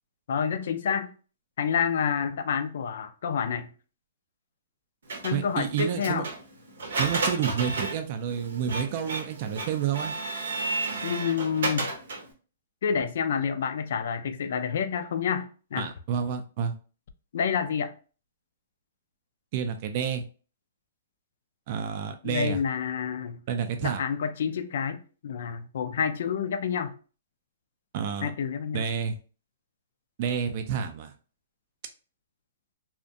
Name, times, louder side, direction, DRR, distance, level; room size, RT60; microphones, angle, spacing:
voice 1, 0.3-1.1 1.6-3.7 5.2-6.3 11.0-11.9 12.8-15.9 17.3-17.9 22.2-23.4 23.8-26.9 28.2-28.9, left 7 dB, 65° left, 0.3 m, -28 dB
Printer, 5.1-12.3, right 3 dB, 80° right, 0.7 m, -33 dB
voice 2, 5.3-6.2 7.0-10.1 15.8-16.7 19.5-20.2 21.7-22.6 23.5-24.0 27.9-28.3 28.7-29.1 30.2-31.1, right 8 dB, 45° right, 0.3 m, -29 dB
2.5 x 2.1 x 2.6 m
hypercardioid pair, 140°, 0 cm